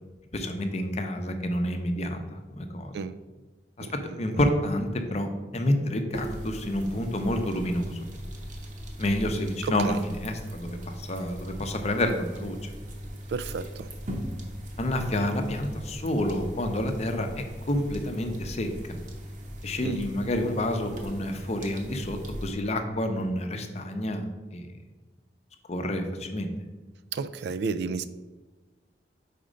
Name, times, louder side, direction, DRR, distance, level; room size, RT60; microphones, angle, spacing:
voice 1, 0.3-2.9 3.8-3.9 4.2-8.0 9.0-12.7 14.8-18.7 19.6-24.2 24.5-24.7 25.7-26.5, left 1 dB, 40° left, 6 dB, 0.6 m, -29 dB
sound 1, 6.1-22.5, equal, 45° right, 0.9 m, -39 dB
voice 2, 9.6-10.0 13.3-13.9 19.8-20.0 27.1-28.1, right 5 dB, 65° right, 12 dB, 0.3 m, -32 dB
5.1 x 4.3 x 5.0 m, 1.2 s
head